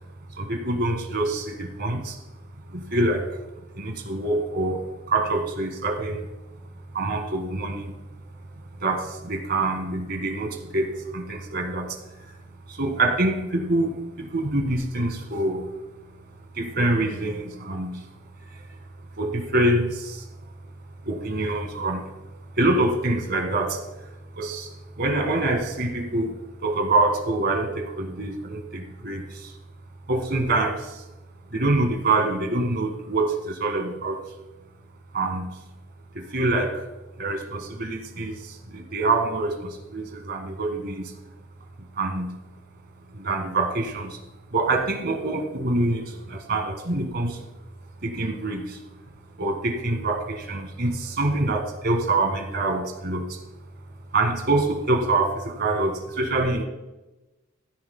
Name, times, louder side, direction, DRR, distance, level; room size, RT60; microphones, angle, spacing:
voice 1, 0.4-2.2 2.7-3.4 3.8-6.3 6.9-8.0 8.8-12.0 12.3-12.4 12.7-15.7 16.5-18.0 18.5-18.6 19.2-20.3 21.0-22.1 22.6-24.1 24.3-29.5 30.1-31.0 31.5-34.2 35.1-35.5 36.1-36.9 37.2-41.1 42.0-42.3 43.1-44.2 44.5-47.5 48.0-48.8 49.4-53.4 54.1-56.7, right 2 dB, 55° right, 5 dB, 1.7 m, -25 dB
16.0 x 14.0 x 2.2 m, 1.0 s
head